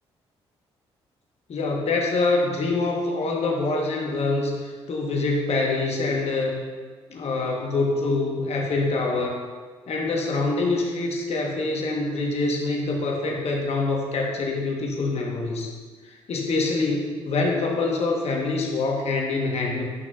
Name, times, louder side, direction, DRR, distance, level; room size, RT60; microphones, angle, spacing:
voice 1, 1.5-6.6 7.1-9.4 9.9-15.7 16.0-19.9, left 3 dB, 55° left, 0 dB, 1.2 m, -25 dB
9.5 x 5.9 x 2.4 m, 1.5 s
hypercardioid pair, 45°, 13 cm